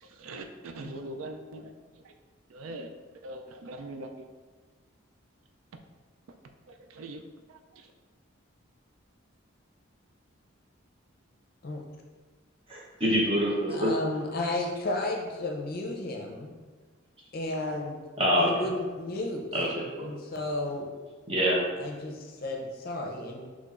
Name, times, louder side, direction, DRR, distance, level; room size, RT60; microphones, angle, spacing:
voice 1, 0.0-1.7 2.0-2.1 2.5-2.9 3.2-4.1 6.9-7.2 7.5-7.9, right 2 dB, 85° right, 6 dB, 0.4 m, -41 dB
voice 2, 12.7-13.9 18.2-18.5 19.5-20.1 21.3-21.6, equal, 25° right, -4 dB, 0.9 m, -26 dB
voice 3, 13.7-16.5 17.3-18.0 18.4-19.4 20.0-20.9 21.8-23.5, left 2 dB, 45° left, 1 dB, 0.6 m, -33 dB
5.9 x 3.1 x 2.5 m, 1.4 s
head